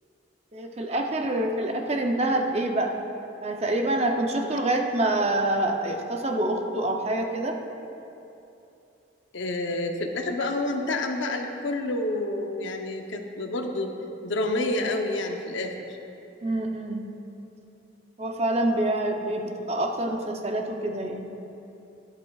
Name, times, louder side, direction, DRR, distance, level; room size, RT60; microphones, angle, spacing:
voice 1, 0.5-2.9 3.4-7.6 16.4-17.0 18.2-21.3, right 1 dB, 35° right, 3 dB, 0.6 m, -26 dB
voice 2, 9.3-13.9 14.2-16.0, left 2 dB, 85° left, 4 dB, 0.8 m, -29 dB
12.0 x 11.0 x 2.4 m, 2.9 s
head